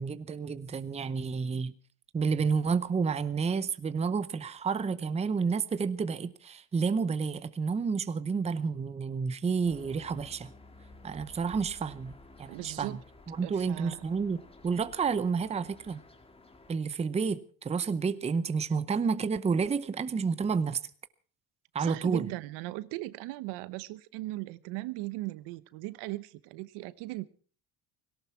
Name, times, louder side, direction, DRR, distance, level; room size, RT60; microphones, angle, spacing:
voice 1, 0.0-1.7 2.1-10.5 11.0-12.1 12.4-13.0 13.3-16.0 16.7-20.8 21.7-22.3, right 5 dB, 15° right, 0.7 m, -30 dB
sound 1, 9.6-16.8, left 2 dB, 15° left, 1.7 m, -53 dB
voice 2, 12.5-13.0 13.4-14.1 21.8-27.2, right 19 dB, 80° right, 1.0 m, -38 dB
17.5 x 17.5 x 4.5 m
cardioid pair, 130°, 41 cm